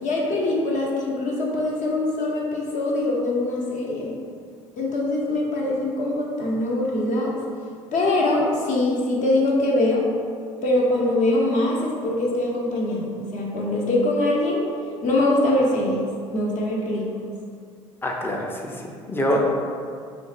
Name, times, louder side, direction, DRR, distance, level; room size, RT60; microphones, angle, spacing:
voice 1, 0.0-4.1 4.7-7.3 7.9-10.0 10.6-14.7 15.0-16.0 16.3-17.1, left 2 dB, 50° left, -3 dB, 0.7 m, -23 dB
voice 2, 18.0-19.4, equal, 15° left, 0 dB, 0.5 m, -26 dB
3.4 x 2.0 x 3.2 m, 2.2 s
figure-of-eight pair, 60°, 16 cm